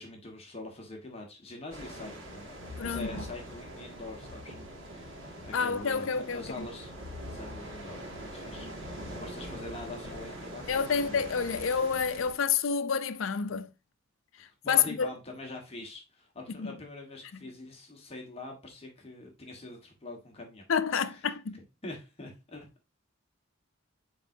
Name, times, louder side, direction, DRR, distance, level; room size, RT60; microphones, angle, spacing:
voice 1, 0.0-2.5 2.8-4.6 4.8-6.9 7.3-11.2 14.4-21.3 21.8-22.7, left 2 dB, 30° left, 1.5 m, -44 dB
sound 1, 1.7-12.3, equal, 85° right, 2.2 m, -43 dB
voice 2, 2.8-3.2 5.5-6.7 10.7-13.7 14.7-15.1 16.6-16.7 20.7-21.6, left 6 dB, 80° left, 0.5 m, -28 dB
7.2 x 4.8 x 2.7 m
head